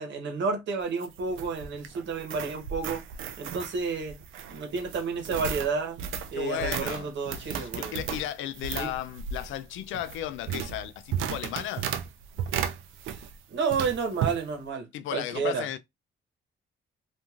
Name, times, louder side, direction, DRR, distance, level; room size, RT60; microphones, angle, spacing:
voice 1, 0.0-3.0 3.4-4.2 4.5-6.0 6.3-8.0 8.7-8.9 13.1-14.9 15.1-15.8, right 5 dB, 65° right, 1.0 m, -31 dB
sound 1, 0.8-13.4 13.7-14.4, right 8 dB, 85° right, 0.4 m, -35 dB
voice 2, 6.3-11.9 14.9-15.8, left 12 dB, 80° left, 0.4 m, -35 dB
2.9 x 2.5 x 2.4 m
cardioid pair, 90°, 20 cm